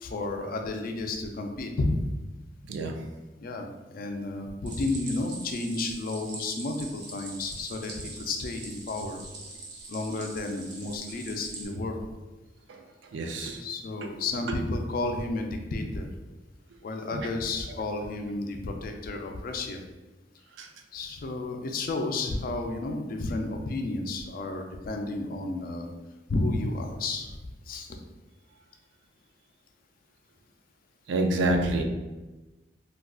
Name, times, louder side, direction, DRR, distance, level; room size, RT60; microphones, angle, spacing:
voice 1, 0.0-2.0 3.4-9.2 9.9-12.0 13.3-16.1 16.8-19.8 20.9-25.9 26.3-27.4 27.7-28.0 31.6-31.8, left 2 dB, 50° left, 4 dB, 0.4 m, -32 dB
Stream, 4.7-11.7, right 3 dB, 65° right, 0.8 m, -43 dB
voice 2, 13.1-13.6 14.0-14.1 17.1-17.2 20.6-20.7 31.1-31.8, right 2 dB, 85° right, 4 dB, 0.4 m, -27 dB
3.6 x 2.3 x 2.3 m, 1.1 s
head